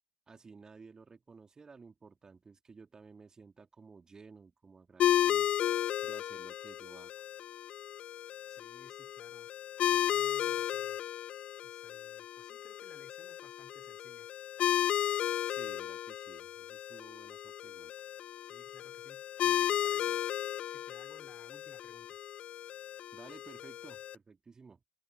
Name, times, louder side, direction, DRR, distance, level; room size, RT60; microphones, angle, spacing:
voice 1, 0.3-5.5 6.0-7.2 15.4-17.9 23.1-24.8, right 4 dB, 25° right, 3.4 m, -54 dB
sound 1, 5.0-24.1, left 11 dB, 45° left, 0.3 m, -34 dB
voice 2, 8.5-9.5 9.9-11.0 11.6-14.3 18.4-20.3 20.7-22.2, left 4 dB, 20° left, 5.6 m, -59 dB
hypercardioid pair, 65°, 3 cm